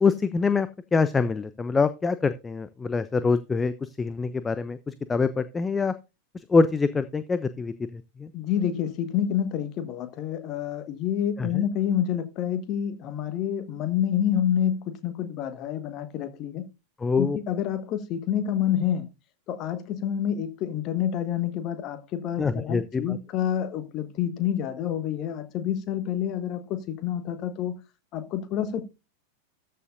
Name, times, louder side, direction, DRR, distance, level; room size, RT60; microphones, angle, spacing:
voice 1, 0.0-5.9 6.5-8.3 11.4-11.7 17.0-17.4 22.4-23.2, left 4 dB, 15° left, 0.5 m, -25 dB
voice 2, 8.3-16.6 17.2-19.1 19.5-27.7 28.1-28.8, left 10 dB, 35° left, 1.3 m, -28 dB
13.5 x 6.8 x 2.5 m
figure-of-eight pair, 90°, 0 cm